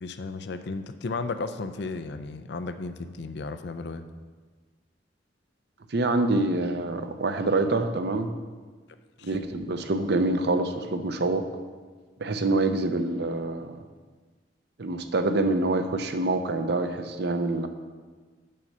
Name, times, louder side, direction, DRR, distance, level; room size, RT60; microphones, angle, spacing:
voice 1, 0.0-4.0 9.2-9.3, left 3 dB, 60° left, 10 dB, 0.5 m, -34 dB
voice 2, 5.9-8.3 9.2-11.5 12.2-13.8 14.8-17.7, right 2 dB, 60° right, 8 dB, 0.6 m, -26 dB
7.5 x 5.4 x 6.7 m, 1.4 s
head